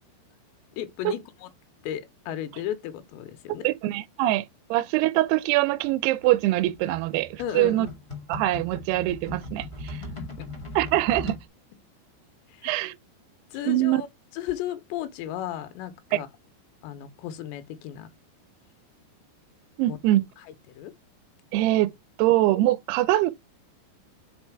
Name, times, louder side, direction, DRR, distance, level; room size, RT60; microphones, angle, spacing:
voice 1, 0.8-1.5 1.8-3.7 7.4-7.9 10.0-10.5 12.5-12.7 13.5-14.1 14.3-16.3 16.8-18.1 19.9-20.0 20.7-20.9, left 11 dB, 90° left, 3.1 m, -34 dB
voice 2, 3.6-7.9 8.3-10.0 10.8-11.4 12.6-12.9 13.7-14.0 16.1-16.2 19.8-20.2 21.5-21.9 22.2-23.3, right 15 dB, 85° right, 2.4 m, -23 dB
sound 1, 5.8-11.4, left 1 dB, 15° left, 1.2 m, -39 dB
5.3 x 4.8 x 4.6 m
omnidirectional pair, 5.0 m